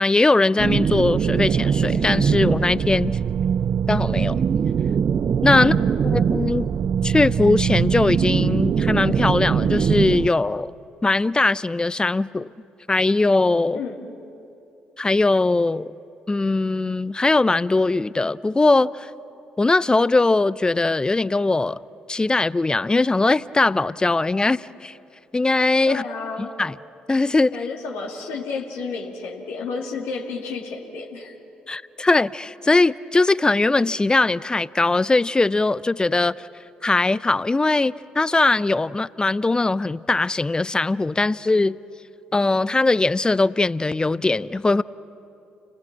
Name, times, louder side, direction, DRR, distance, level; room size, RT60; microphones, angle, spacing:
voice 1, 0.0-3.2 3.9-4.4 5.4-5.7 6.1-6.7 7.0-10.7 11.0-12.5 12.9-13.8 15.0-15.9 16.3-19.1 19.6-21.8 22.1-24.9 25.3-26.0 26.6-26.7 27.1-27.5 31.7-36.5 36.8-41.8 42.3-44.8, left 3 dB, 20° left, 0.6 m, -20 dB
sound 1, 0.6-10.3, right 7 dB, 45° right, 0.5 m, -22 dB
voice 2, 5.6-6.1 13.7-14.2 25.9-26.5 27.5-31.3, left 4 dB, 70° left, 2.4 m, -31 dB
30.0 x 19.5 x 7.5 m
hypercardioid pair, 45°, 4 cm